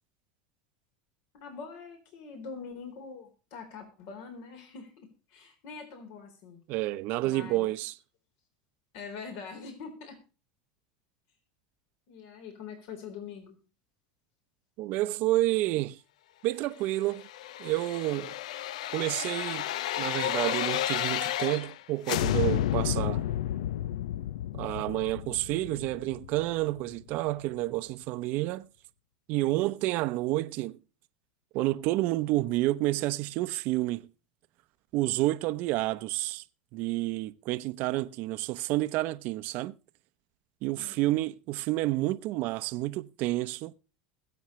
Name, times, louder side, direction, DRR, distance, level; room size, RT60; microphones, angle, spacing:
voice 1, 1.4-6.6 7.2-7.7 8.9-10.2 12.1-13.6 40.8-41.0, left 5 dB, 65° left, 3.9 m, -44 dB
voice 2, 6.7-8.0 14.8-16.0 16.4-17.3 17.6-18.4 18.9-19.7 20.0-23.3 24.5-28.7 29.3-30.8 31.5-34.1 34.9-36.4 36.7-39.7 40.6-43.7, right 17 dB, 55° right, 0.7 m, -29 dB
sound 1, 17.0-21.8 22.1-26.9 27.3-27.4, left 12 dB, 85° left, 0.5 m, -32 dB
21.0 x 7.9 x 3.1 m
supercardioid pair, 115°, 4 cm